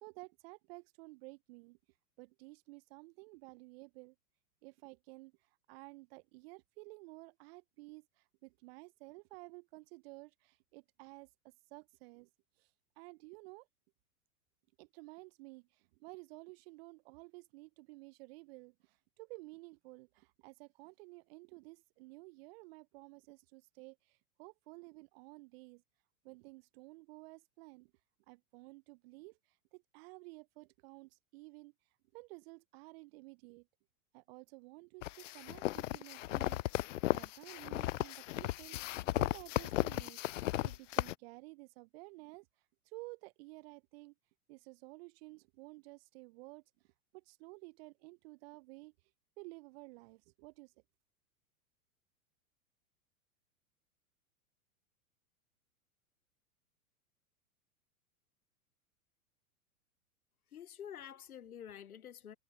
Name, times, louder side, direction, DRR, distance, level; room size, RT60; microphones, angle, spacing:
voice 1, 0.0-1.8 2.2-4.2 4.6-11.3 11.7-12.3 12.6-12.7 13.0-13.7 14.8-25.8 26.2-27.9 28.3-31.7 32.1-33.7 34.1-38.8 39.1-40.2 40.6-42.5 42.8-44.1 44.5-46.6 47.1-48.9 49.4-50.7, right 25 dB, 45° right, 0.9 m, -53 dB
sound 1, 35.0-41.1, left 16 dB, 60° left, 0.5 m, -35 dB
voice 2, 60.5-62.4, left 9 dB, 75° left, 1.0 m, -48 dB
figure-of-eight pair, 95°, 43 cm